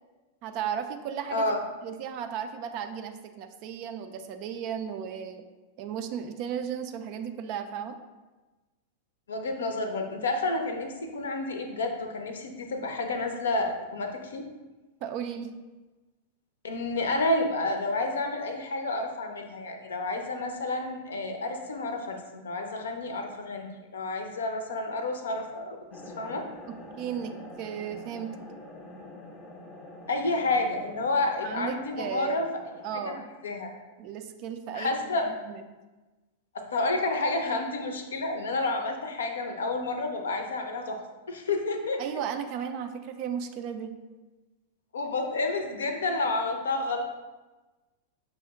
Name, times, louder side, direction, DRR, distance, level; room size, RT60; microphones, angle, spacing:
voice 1, 0.4-1.6 1.8-5.5 5.8-8.0 15.0-15.5 27.0-28.3 31.4-32.4 32.8-33.2 34.0-35.6 42.0-43.9, right 8 dB, 45° right, 7 dB, 0.3 m, -35 dB
voice 2, 1.3-1.6 9.3-14.5 16.6-25.8 26.2-26.5 30.1-32.5 32.9-33.7 34.7-35.3 36.7-41.0 41.3-42.0 44.9-47.0, left 2 dB, 70° left, 4 dB, 0.5 m, -30 dB
sound 1, 25.9-33.1, left 1 dB, 25° left, 0.7 m, -46 dB
5.6 x 2.1 x 3.5 m, 1.2 s
figure-of-eight pair, 95°, 0 cm